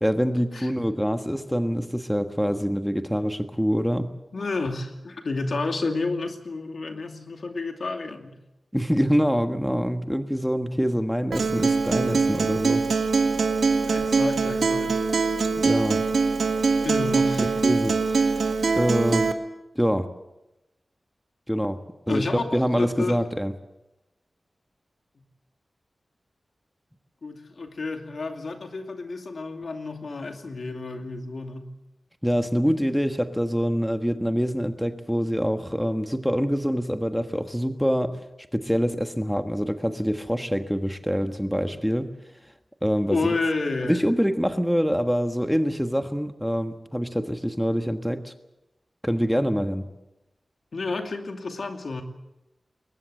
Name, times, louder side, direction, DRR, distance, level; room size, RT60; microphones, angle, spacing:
voice 1, 0.0-4.1 8.7-12.8 15.6-16.0 17.4-18.4 18.7-19.3 19.7-20.1 21.5-21.8 22.1-23.5 32.2-38.2 38.5-42.1 42.8-43.4 43.9-48.3 49.0-49.9, equal, ahead, 7 dB, 1.4 m, -25 dB
voice 2, 4.3-8.3 13.8-15.0 16.8-17.5 22.1-23.2 25.2-25.3 27.2-31.7 43.1-44.1 50.7-52.0, left 3 dB, 65° left, 5 dB, 2.6 m, -30 dB
Acoustic guitar, 11.3-19.3, right 4 dB, 90° right, 1.6 m, -23 dB
21.5 x 20.0 x 7.8 m, 0.94 s
wide cardioid pair, 85°, 0 cm